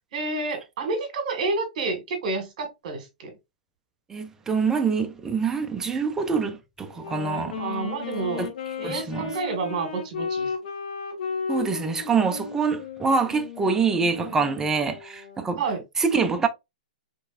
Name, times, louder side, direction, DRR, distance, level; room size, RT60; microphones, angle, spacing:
voice 1, 0.1-3.3 7.6-8.4 8.8-10.5 15.6-15.8, right 3 dB, 55° right, 1.8 m, -29 dB
voice 2, 4.1-7.6 8.4-8.5 8.8-9.3 11.5-15.6 16.0-16.5, right 5 dB, 10° right, 0.5 m, -25 dB
Wind instrument woodwind instrument, 6.9-15.6, left 6 dB, 65° left, 1.4 m, -35 dB
4.3 x 3.2 x 2.5 m
hypercardioid pair, 145°, 5 cm